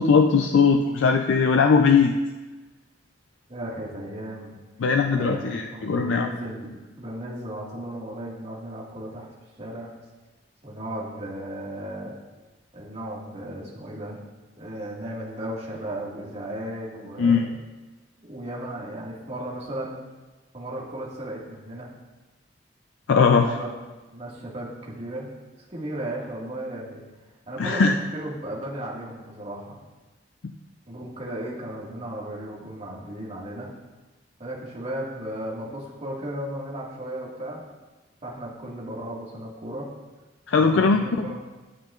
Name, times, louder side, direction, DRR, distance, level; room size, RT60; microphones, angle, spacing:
voice 1, 0.0-2.2 4.8-6.3 17.2-17.5 23.1-23.5 27.6-27.9 40.5-41.3, left 5 dB, 85° left, 5 dB, 0.4 m, -19 dB
voice 2, 3.5-4.6 5.1-9.3 9.6-9.9 10.6-12.1 12.7-14.2 14.6-17.6 18.2-20.0 20.5-21.9 23.4-23.8 24.1-25.3 25.7-27.0 27.5-29.8 30.9-33.7 34.4-37.7 38.2-39.9 40.6-41.4, right 1 dB, 35° right, -5 dB, 1.8 m, -35 dB
12.5 x 7.3 x 2.4 m, 1.2 s
head